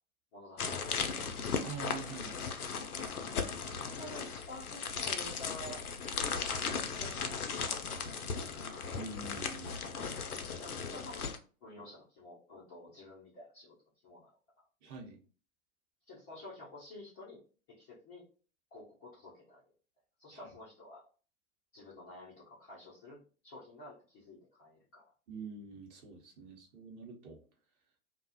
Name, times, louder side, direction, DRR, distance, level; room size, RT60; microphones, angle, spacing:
voice 1, 0.3-1.4 3.6-5.8 6.2-6.4 7.0-8.6 10.6-11.3 11.6-13.7 14.0-14.3 14.6-14.7 16.1-17.4 17.7-18.2 18.7-19.6 20.2-21.1 21.7-25.0, left 1 dB, 15° left, -9 dB, 0.3 m, -50 dB
sound 1, 0.6-11.4, left 5 dB, 85° left, 0.5 m, -37 dB
voice 2, 1.6-2.4 9.0-9.9 14.8-15.2 20.3-20.4 25.3-27.4, right 4 dB, 30° right, 0 dB, 0.8 m, -45 dB
2.5 x 2.2 x 2.5 m, 0.38 s
figure-of-eight pair, 100°, 44 cm